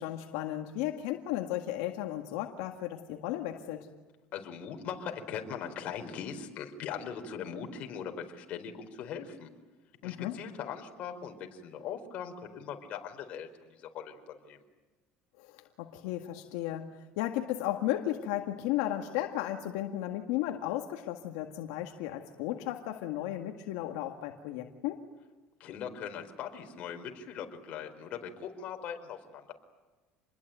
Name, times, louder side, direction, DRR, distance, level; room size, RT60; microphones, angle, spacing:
voice 1, 0.0-3.9 10.0-10.4 15.4-25.0, left 13 dB, 85° left, 4 dB, 1.9 m, -34 dB
voice 2, 4.3-9.5 10.0-14.1 14.4-14.6 25.6-29.5, left 7 dB, 50° left, 4 dB, 4.5 m, -40 dB
28.0 x 21.5 x 9.3 m, 1.2 s
cardioid pair, 130°, 3 cm